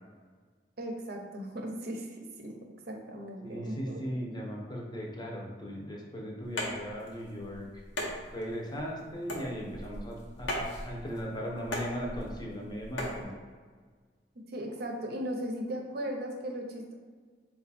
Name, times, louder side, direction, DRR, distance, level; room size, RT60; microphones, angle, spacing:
voice 1, 0.8-2.5 2.9-4.0 14.4-16.9, equal, 60° right, 2 dB, 0.7 m, -37 dB
voice 2, 3.4-7.7 8.3-13.3, equal, 25° left, -1 dB, 0.7 m, -38 dB
sound 1, 6.4-13.2, left 1 dB, 90° left, 0.9 m, -38 dB
4.3 x 2.3 x 4.1 m, 1.5 s
head